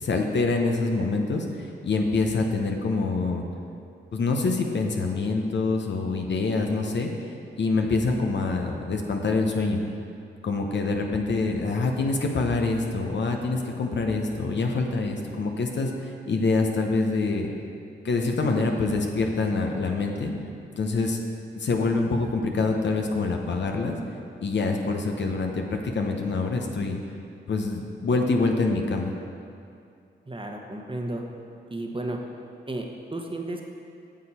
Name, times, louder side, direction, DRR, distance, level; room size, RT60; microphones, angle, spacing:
voice 1, 0.0-3.4 4.1-7.1 7.6-9.8 10.4-17.5 18.0-20.3 20.8-21.2 21.5-24.0 24.4-27.0 27.5-29.1, left 3 dB, 65° left, 2 dB, 0.9 m, -25 dB
voice 2, 30.3-31.2 31.7-32.2 32.7-32.8 33.1-33.7, right 2 dB, 25° right, 2 dB, 1.1 m, -32 dB
8.8 x 6.8 x 4.3 m, 2.5 s
cardioid pair, 45°, 20 cm